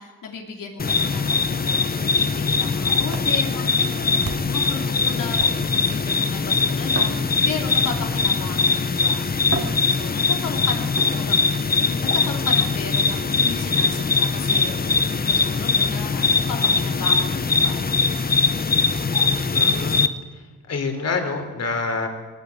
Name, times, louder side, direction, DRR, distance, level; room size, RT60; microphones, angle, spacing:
voice 1, 0.0-9.2 9.9-11.3 11.8-17.8, left 5 dB, 70° left, 1 dB, 3.1 m, -35 dB
sound 1, 0.8-20.1, left 4 dB, 30° left, 0.9 m, -21 dB
sound 2, 3.1-4.7 5.4-6.0 6.8-8.0 8.8-8.9 9.4-10.5 10.9-11.7 13.1-13.4 14.5-14.7 15.3-15.4 15.8-15.9 16.2-16.4 16.7-16.8 17.2-17.3 17.7-17.8 18.3-18.4 19.2-19.4, right 4 dB, 45° right, 2.8 m, -35 dB
voice 2, 19.5-20.1 20.3-22.1, left 4 dB, 50° left, 5 dB, 3.5 m, -27 dB
21.5 x 18.0 x 8.4 m, 1.3 s
wide cardioid pair, 145°, 33 cm